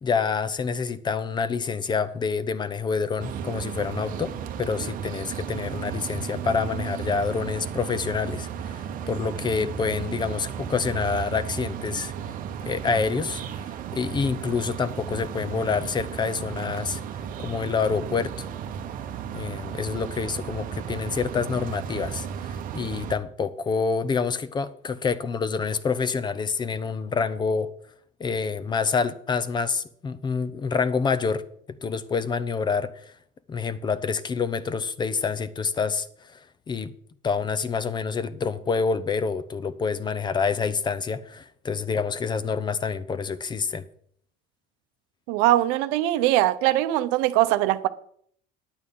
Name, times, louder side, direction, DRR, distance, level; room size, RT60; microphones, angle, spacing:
voice 1, 0.0-12.1 12.7-13.7 13.9-17.0 17.4-18.5 19.3-27.7 28.2-31.4 31.8-33.0 33.5-36.4 36.7-36.9 37.2-43.8, left 5 dB, 20° left, 0.6 m, -27 dB
sound 1, 3.2-23.2, right 8 dB, 40° right, 0.9 m, -34 dB
voice 2, 45.3-47.9, right 15 dB, 75° right, 0.8 m, -21 dB
9.7 x 8.7 x 5.4 m
cardioid pair, 140°, 20 cm